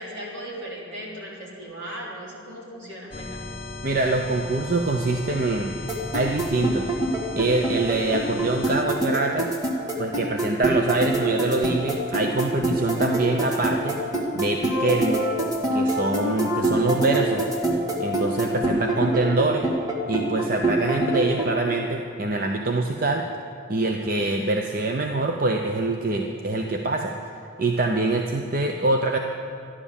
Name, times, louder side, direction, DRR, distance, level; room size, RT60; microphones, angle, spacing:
voice 1, 0.0-3.5, right 1 dB, 75° right, -4 dB, 3.8 m, -37 dB
sound 1, 3.1-8.8, left 2 dB, 25° left, 0.8 m, -37 dB
voice 2, 3.8-6.9 7.3-9.5 10.0-14.0 14.3-15.2 15.7-17.5 18.0-19.7 20.1-23.3 23.7-27.2 27.6-29.2, right 2 dB, 45° right, 2 dB, 0.7 m, -24 dB
sound 2, 5.9-21.5, right 1 dB, 20° right, 1.7 m, -25 dB
13.5 x 11.5 x 7.1 m, 2.5 s
head